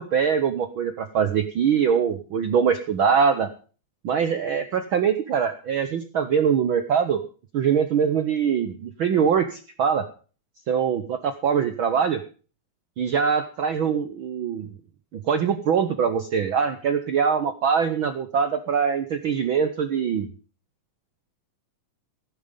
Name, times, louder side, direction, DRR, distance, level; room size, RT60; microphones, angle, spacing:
voice 1, 0.0-3.5 4.0-7.2 7.5-10.1 10.7-12.2 13.0-14.7 15.3-20.3, right 7 dB, 70° right, 9 dB, 1.2 m, -23 dB
15.5 x 11.0 x 5.3 m, 0.38 s
omnidirectional pair, 3.5 m